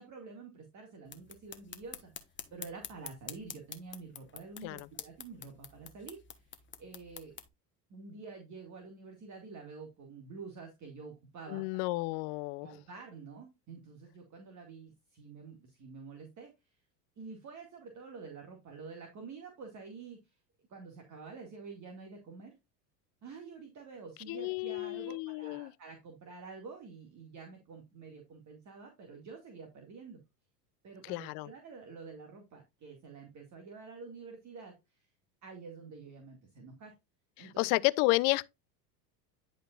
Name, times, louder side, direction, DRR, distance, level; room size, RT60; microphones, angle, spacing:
voice 1, 0.0-2.1 2.5-7.4 7.9-11.6 12.6-16.5 17.2-20.4 20.7-22.5 23.2-30.2 30.8-35.1 35.4-36.9 37.4-37.8, right 4 dB, 35° right, 2.1 m, -48 dB
sound 1, 1.1-7.5, left 8 dB, 25° left, 1.1 m, -48 dB
voice 2, 11.5-12.7 24.3-25.7 31.1-31.5 37.4-38.5, left 22 dB, 50° left, 0.6 m, -31 dB
10.5 x 5.2 x 2.5 m
hypercardioid pair, 90°, 50 cm